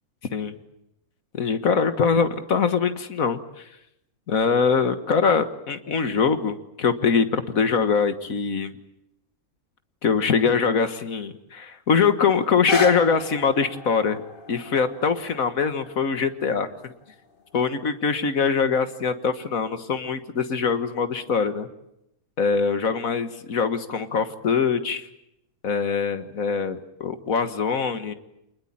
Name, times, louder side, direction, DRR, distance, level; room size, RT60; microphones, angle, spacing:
voice 1, 1.3-3.6 4.3-8.7 10.0-14.2 14.5-16.9 17.5-21.7 22.4-25.1 25.6-28.1, left 5 dB, 70° left, 10 dB, 1.9 m, -23 dB
sound 1, 12.4-18.5 19.2-19.3, left 2 dB, 35° left, 1.7 m, -34 dB
27.5 x 20.5 x 8.7 m, 0.83 s
omnidirectional pair, 1.5 m